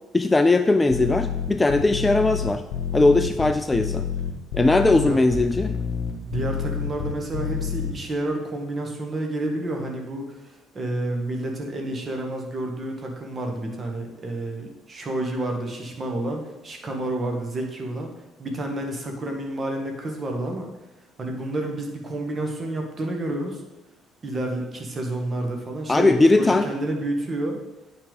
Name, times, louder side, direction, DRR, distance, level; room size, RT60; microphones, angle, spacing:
voice 1, 0.1-2.6 2.9-4.1 4.5-5.7 25.9-26.7, left 2 dB, 15° left, 10 dB, 0.3 m, -19 dB
sound 1, 0.9-7.9, left 7 dB, 60° left, 0.9 m, -28 dB
voice 2, 6.2-18.1 18.4-20.7 21.2-23.6 24.2-27.6, right 1 dB, 35° right, 2 dB, 1.4 m, -29 dB
9.0 x 3.4 x 5.0 m, 0.98 s
figure-of-eight pair, 50°, 0 cm